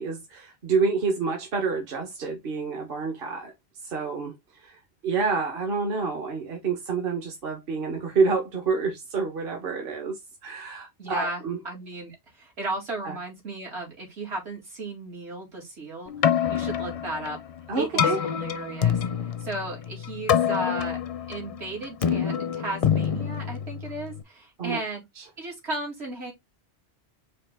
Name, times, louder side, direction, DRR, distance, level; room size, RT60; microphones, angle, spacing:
voice 1, 0.0-3.5 3.8-4.3 4.6-4.8 5.0-11.6 13.0-13.2 17.7-18.2 24.6-24.8 25.2-25.3, right 4 dB, 60° right, 1.2 m, -28 dB
voice 2, 11.0-16.1 16.5-17.4 17.7-21.0 21.3-25.0 25.4-26.3, right 2 dB, 80° right, 2.4 m, -35 dB
Keyboard (musical), 16.1-24.2, left 8 dB, 50° left, 0.5 m, -26 dB
4.9 x 3.1 x 3.5 m
omnidirectional pair, 1.1 m